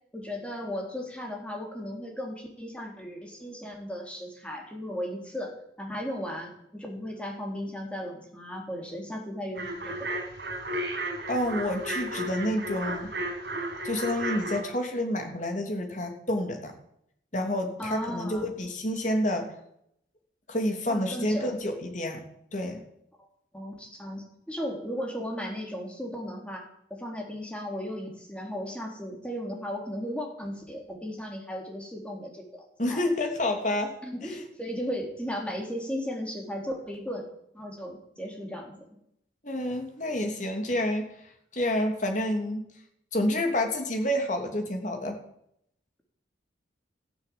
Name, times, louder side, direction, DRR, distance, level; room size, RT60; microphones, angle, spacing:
voice 1, 0.1-10.1 17.8-18.5 20.9-21.5 23.5-33.0 34.0-37.3 37.5-38.9, equal, 5° left, 1 dB, 3.7 m, -36 dB
sound 1, 9.5-14.6, right 1 dB, 60° right, 6.1 m, -33 dB
voice 2, 11.3-13.1 13.8-16.7 17.3-19.5 20.5-22.2 22.5-22.8 32.8-33.9 34.2-34.4 39.4-41.0 41.5-42.6 43.1-45.2, left 1 dB, 40° left, 4 dB, 3.1 m, -29 dB
15.0 x 10.5 x 8.7 m, 0.73 s
head